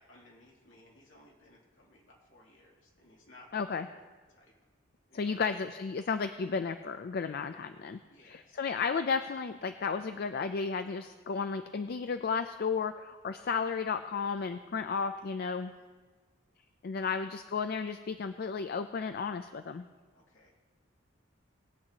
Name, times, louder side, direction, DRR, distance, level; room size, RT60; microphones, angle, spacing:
voice 1, 0.0-4.0 4.3-4.5 5.1-5.4 7.9-8.8 13.3-13.6 16.9-17.2 20.1-20.5, left 1 dB, 70° left, -4 dB, 3.0 m, -60 dB
voice 2, 3.5-3.9 5.1-15.7 16.8-19.8, left 5 dB, 50° left, 9 dB, 0.4 m, -33 dB
20.5 x 8.5 x 2.9 m, 1.4 s
head